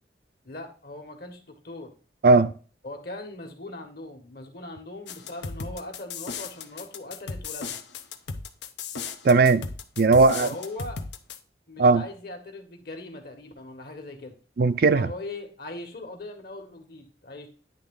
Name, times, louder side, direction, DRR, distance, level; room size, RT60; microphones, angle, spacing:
voice 1, 0.4-1.9 2.8-7.8 10.4-11.0 11.7-14.4 14.9-17.5, left 2 dB, 55° left, 1.5 m, -40 dB
sound 1, 5.1-11.4, left 5 dB, 75° left, 0.8 m, -35 dB
voice 2, 9.2-9.7 10.0-10.5 11.8-12.0 14.6-15.1, right 3 dB, 55° right, 0.4 m, -18 dB
9.8 x 3.5 x 3.8 m
head